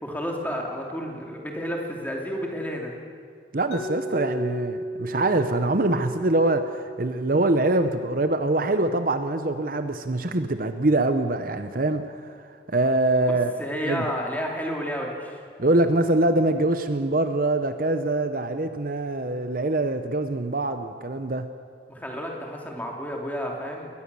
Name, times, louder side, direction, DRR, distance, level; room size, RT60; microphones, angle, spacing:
voice 1, 0.0-2.9 13.3-15.4 21.9-23.9, equal, 10° left, 0 dB, 2.9 m, -31 dB
voice 2, 3.5-12.4 12.7-13.5 13.8-14.1 15.6-21.5, right 2 dB, 50° right, 9 dB, 0.9 m, -24 dB
Mallet percussion, 3.7-9.5, equal, 75° left, 1.6 m, -36 dB
21.5 x 20.0 x 7.0 m, 2.2 s
head